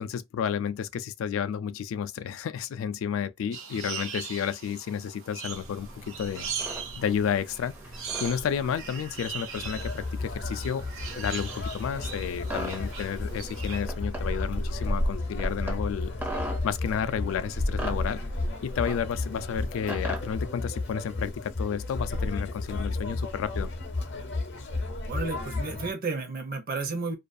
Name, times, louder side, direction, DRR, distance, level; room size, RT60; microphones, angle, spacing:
voice 1, 0.0-6.5 7.0-7.8 8.2-10.9 11.2-16.2 16.6-18.2 18.6-23.7, left 8 dB, 85° left, 0.3 m, -31 dB
sound 1, 3.5-13.8, right 6 dB, 85° right, 0.7 m, -40 dB
sound 2, 5.5-20.5, right 1 dB, 10° right, 0.4 m, -41 dB
Conversation, 9.6-25.9, left 2 dB, 60° left, 0.6 m, -32 dB
voice 2, 25.1-27.1, right 3 dB, 50° right, 0.6 m, -32 dB
2.4 x 2.3 x 2.5 m
head